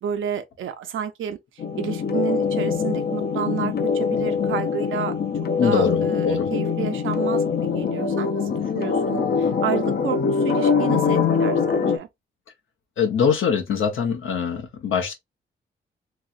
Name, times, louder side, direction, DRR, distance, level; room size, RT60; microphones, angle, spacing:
voice 1, 0.0-1.4 1.8-5.1 5.6-8.4 8.7-12.1, right 8 dB, 90° right, 0.6 m, -30 dB
sound 1, 1.6-12.0, left 5 dB, 55° left, 0.5 m, -23 dB
voice 2, 5.6-6.5 13.0-15.1, left 6 dB, 85° left, 0.9 m, -23 dB
3.0 x 3.0 x 2.5 m
cardioid pair, 90°, 20 cm